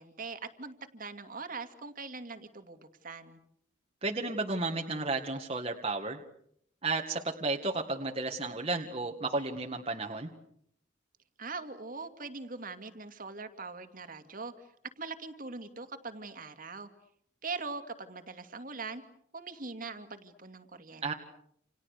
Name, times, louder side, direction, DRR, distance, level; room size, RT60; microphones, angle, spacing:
voice 1, 0.0-3.4 11.4-14.7 15.0-16.9 17.4-19.0 19.3-21.1, right 4 dB, 45° right, 7 dB, 2.3 m, -42 dB
voice 2, 4.0-6.2 6.8-10.3 21.0-21.1, right 3 dB, 30° right, 1 dB, 1.9 m, -33 dB
29.5 x 28.5 x 6.6 m, 0.71 s
head